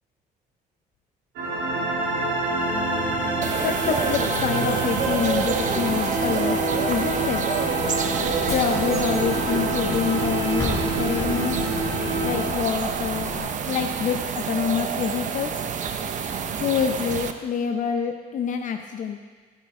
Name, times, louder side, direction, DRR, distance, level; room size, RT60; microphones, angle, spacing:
sound 1, 1.4-12.5, right 2 dB, 80° right, 3.4 m, -26 dB
sound 2, 3.4-17.3, right 7 dB, 45° right, 0.8 m, -28 dB
voice 1, 3.6-6.6 6.9-7.4 8.5-11.6 12.2-15.5 16.6-19.2, left 7 dB, 50° left, 5 dB, 0.7 m, -26 dB
Bus / Engine, 8.3-13.4, left 2 dB, 15° left, 2.8 m, -34 dB
13.0 x 10.5 x 3.7 m, 1.5 s
cardioid pair, 110°, 17 cm